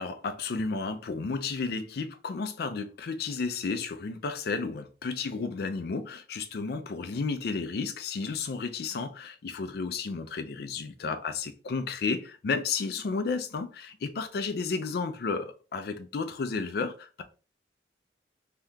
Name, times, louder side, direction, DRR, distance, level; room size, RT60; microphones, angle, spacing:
voice 1, 0.0-17.2, left 4 dB, 60° left, 0.4 m, -32 dB
3.5 x 2.7 x 2.3 m
head